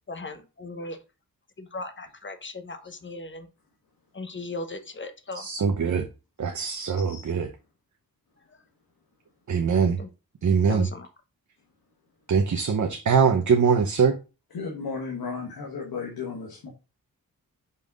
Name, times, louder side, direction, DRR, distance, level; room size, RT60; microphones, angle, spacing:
voice 1, 0.1-1.0 1.6-3.5 4.1-5.5 10.0-10.1 10.7-11.1, left 2 dB, 35° left, 1.0 m, -37 dB
voice 2, 5.3-6.1 6.4-7.5 9.5-10.0 10.4-10.9 12.3-14.2, right 6 dB, 55° right, 0.9 m, -22 dB
voice 3, 7.0-7.3 14.5-16.7, left 5 dB, 90° left, 1.5 m, -34 dB
5.5 x 3.6 x 5.3 m
cardioid pair, 70°, 35 cm